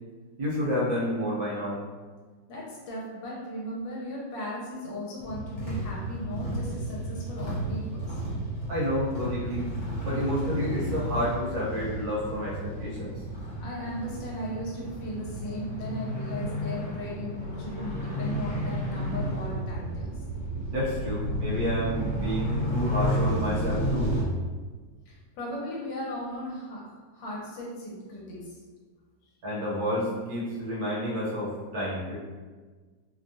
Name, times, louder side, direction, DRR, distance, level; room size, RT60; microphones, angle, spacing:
voice 1, 0.4-1.8 8.7-9.7 10.0-13.1 20.7-24.1 29.4-32.1, equal, 65° right, -7 dB, 1.1 m, -30 dB
voice 2, 2.5-8.2 13.6-20.2 25.1-28.6, equal, 75° left, -4 dB, 1.4 m, -37 dB
sound 1, 5.2-24.2, equal, 55° left, 1.4 m, -32 dB
3.2 x 2.3 x 2.5 m, 1.4 s
omnidirectional pair, 2.1 m